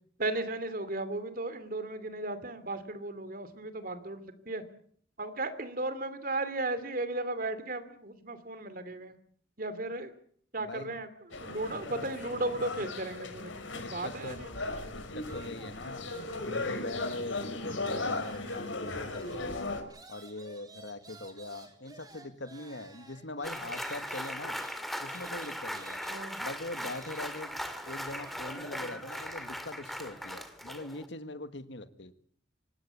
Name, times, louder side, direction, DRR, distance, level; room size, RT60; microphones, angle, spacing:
voice 1, 0.2-4.6 5.2-9.1 9.6-10.1 10.5-11.1 11.4-14.5 26.1-26.4, right 2 dB, 45° right, 12 dB, 2.8 m, -35 dB
voice 2, 10.6-11.0 13.7-14.4 14.8-16.1 16.5-19.8 20.1-24.6 25.0-26.0 26.4-27.6 27.8-32.1, left 2 dB, 65° left, 10 dB, 1.8 m, -42 dB
sound 1, 11.3-19.8, left 2 dB, 85° left, 5.0 m, -37 dB
sound 2, 15.2-17.3 17.6-29.5, right 3 dB, 20° right, 3.7 m, -54 dB
sound 3, 23.4-31.1, equal, ahead, 2.5 m, -39 dB
25.5 x 19.0 x 8.3 m, 0.62 s
head